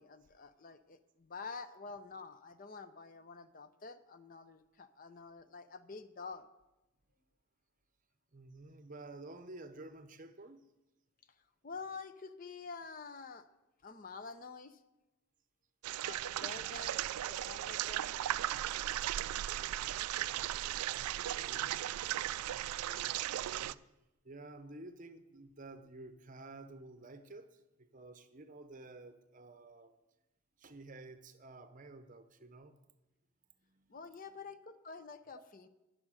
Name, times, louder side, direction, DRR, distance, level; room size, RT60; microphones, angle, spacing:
voice 1, 0.0-6.5 11.6-13.5 13.8-14.8 16.0-18.2 33.9-35.7, left 4 dB, 40° left, 11 dB, 0.5 m, -48 dB
voice 2, 8.3-10.6 18.8-18.9 20.2-20.5 20.8-22.0 22.3-23.8 24.2-30.0 30.6-32.8 33.6-34.0, right 2 dB, 35° right, 10 dB, 0.7 m, -52 dB
sound 1, 15.8-23.7, right 13 dB, 90° right, 0.3 m, -37 dB
11.0 x 6.3 x 8.9 m, 0.98 s
head